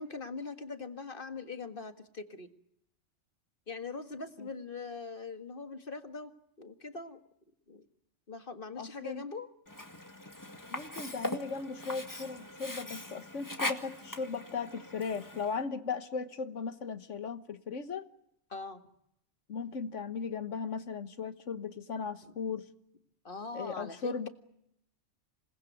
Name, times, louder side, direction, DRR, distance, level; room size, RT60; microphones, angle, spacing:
voice 1, 0.0-2.5 3.7-7.2 7.7-7.8 8.3-9.5 18.5-18.8 22.2-22.3 23.2-24.3, left 4 dB, 50° left, 2.0 m, -42 dB
voice 2, 8.8-9.2 10.7-18.1 19.5-22.7 23.5-24.3, left 5 dB, 90° left, 1.7 m, -37 dB
Sink (filling or washing), 9.7-15.6, left 1 dB, 15° left, 1.9 m, -40 dB
27.5 x 20.0 x 9.2 m
omnidirectional pair, 1.2 m